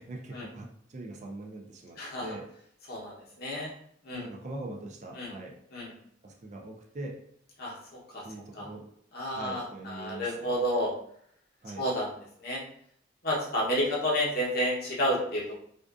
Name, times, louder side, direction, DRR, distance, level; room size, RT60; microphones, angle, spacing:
voice 1, 0.0-2.4 4.1-5.5 6.2-7.2 8.2-8.9 9.3-10.6 11.6-11.8, right 2 dB, 40° right, 0 dB, 0.4 m, -42 dB
voice 2, 2.0-2.3 2.9-3.7 4.0-4.3 5.1-5.4 5.7-5.9 7.6-8.3 8.5-8.7 9.1-10.9 11.8-12.6 13.2-15.5, equal, 50° left, -4 dB, 0.8 m, -31 dB
2.5 x 2.3 x 2.3 m, 0.67 s
head